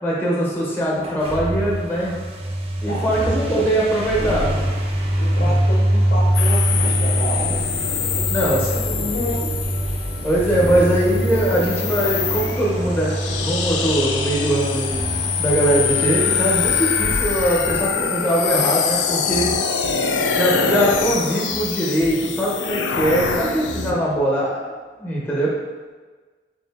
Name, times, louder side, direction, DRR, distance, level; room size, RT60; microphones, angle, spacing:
voice 1, 0.0-2.1 2.8-4.5 5.4-5.6 8.0-8.7 10.2-14.9 15.4-19.5 20.3-24.6 25.0-25.5, right 1 dB, 10° left, -4 dB, 0.7 m, -21 dB
sound 1, 1.0-18.5, right 1 dB, 35° right, 0.4 m, -24 dB
voice 2, 2.8-3.6 4.2-4.4 5.2-7.6 7.8-9.5 10.6-10.9 20.5-20.8, equal, 50° left, -2 dB, 0.6 m, -30 dB
sound 2, 6.3-23.9, left 7 dB, 90° left, 0.3 m, -25 dB
sound 3, 6.7-24.2, equal, 90° right, 0.6 m, -36 dB
3.6 x 2.7 x 3.4 m, 1.4 s
head